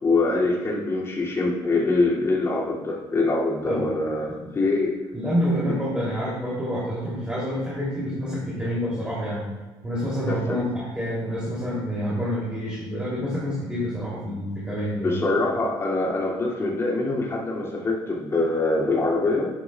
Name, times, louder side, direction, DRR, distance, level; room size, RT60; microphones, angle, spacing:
voice 1, 0.0-4.9 10.3-10.6 15.0-19.5, left 2 dB, 30° left, -4 dB, 2.5 m, -24 dB
voice 2, 5.1-9.4 9.8-15.1, equal, 10° right, -7 dB, 3.0 m, -27 dB
11.0 x 10.5 x 2.4 m, 1.2 s
cardioid pair, 115°, 9 cm